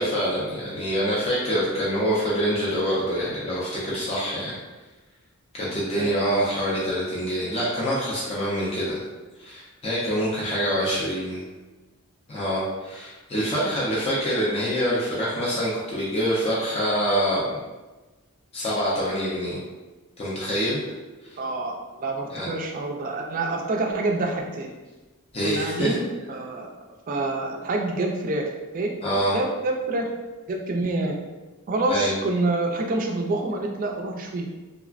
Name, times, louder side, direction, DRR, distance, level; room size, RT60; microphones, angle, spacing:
voice 1, 0.0-4.6 5.5-9.0 9.4-11.4 12.3-17.6 18.5-19.6 20.2-20.8 21.3-21.4 22.3-22.5 25.3-25.9 29.0-29.4 31.9-32.1, equal, 25° left, -6 dB, 0.4 m, -25 dB
voice 2, 21.4-24.7 25.4-26.7 27.1-28.9 29.3-30.1 30.5-31.2 31.7-34.5, right 2 dB, 40° right, 2 dB, 0.3 m, -27 dB
3.2 x 2.0 x 2.4 m, 1.2 s
head